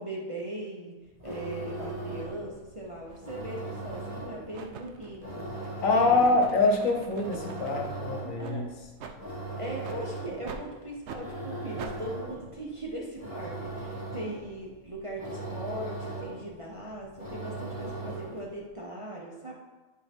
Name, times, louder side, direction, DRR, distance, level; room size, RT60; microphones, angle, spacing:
voice 1, 0.0-6.4 8.4-8.7 9.6-19.5, right 1 dB, 30° right, -3 dB, 0.8 m, -39 dB
sound 1, 1.1-18.5, right 2 dB, 25° left, 2.0 m, -39 dB
sound 2, 3.1-3.2 3.9-4.2 4.5-7.9 8.4-8.6 9.0-9.2 9.8-10.0 10.5-10.7 11.0-11.2 11.8-12.0, right 6 dB, 65° right, 0.8 m, -43 dB
voice 2, 5.8-8.7, left 3 dB, 75° left, 2 dB, 1.3 m, -24 dB
9.6 x 4.5 x 3.6 m, 1.2 s
omnidirectional pair, 1.4 m